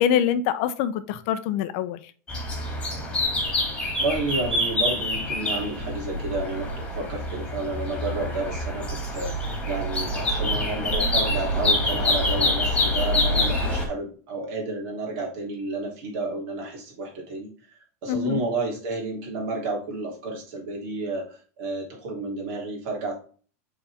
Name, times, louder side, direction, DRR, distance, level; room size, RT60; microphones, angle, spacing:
voice 1, 0.0-2.0 18.1-18.4, left 9 dB, 50° left, 11 dB, 0.8 m, -24 dB
sound 1, 2.3-13.9, left 1 dB, 10° left, 2.1 m, -26 dB
voice 2, 4.0-23.2, right 3 dB, 50° right, -1 dB, 3.1 m, -31 dB
6.9 x 4.2 x 3.5 m, 0.41 s
supercardioid pair, 160°, 8 cm